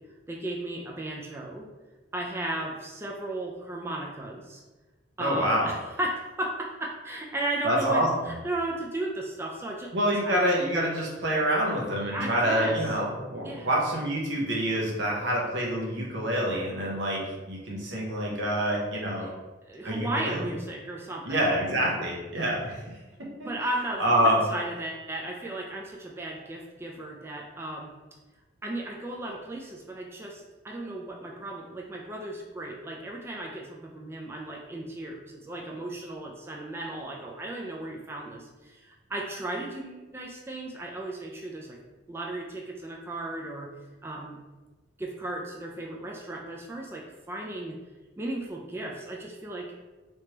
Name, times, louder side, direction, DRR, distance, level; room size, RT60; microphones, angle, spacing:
voice 1, 0.3-1.7 2.1-4.6 5.2-9.9 10.2-10.4 12.1-12.8 13.4-13.7 19.2-19.3 19.6-21.5 23.4-27.9 28.6-41.8 42.1-43.7 44.0-44.4 45.0-47.8 48.2-49.7, right 1 dB, 15° right, -1 dB, 0.3 m, -35 dB
voice 2, 5.2-5.7 7.6-8.3 9.9-17.2 17.5-19.3 19.8-20.4 21.3-22.8 23.4-23.5 24.0-24.4, equal, 85° right, -3 dB, 0.9 m, -26 dB
3.3 x 3.2 x 2.9 m, 1.2 s
head